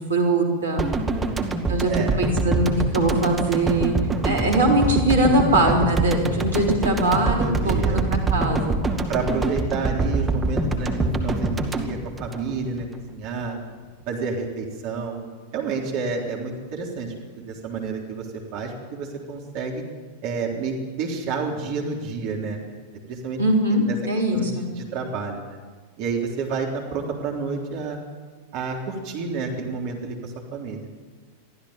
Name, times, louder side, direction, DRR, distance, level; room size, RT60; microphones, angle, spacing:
voice 1, 0.1-0.8 1.7-1.9 2.2-3.9 4.2-8.8 23.4-24.7, right 1 dB, 70° right, 0 dB, 4.0 m, -21 dB
sound 1, 0.8-13.0 13.2-13.4, right 2 dB, 10° right, 2.1 m, -25 dB
voice 2, 1.1-2.2 7.4-8.0 9.1-13.6 14.1-15.2 15.5-18.3 18.5-19.8 20.2-22.6 23.1-23.4 23.7-24.0 24.3-24.5 24.8-25.6 26.0-28.0 28.5-30.9, right 4 dB, 45° right, 0 dB, 3.6 m, -30 dB
23.5 x 15.0 x 9.0 m, 1.4 s
figure-of-eight pair, 90°, 0 cm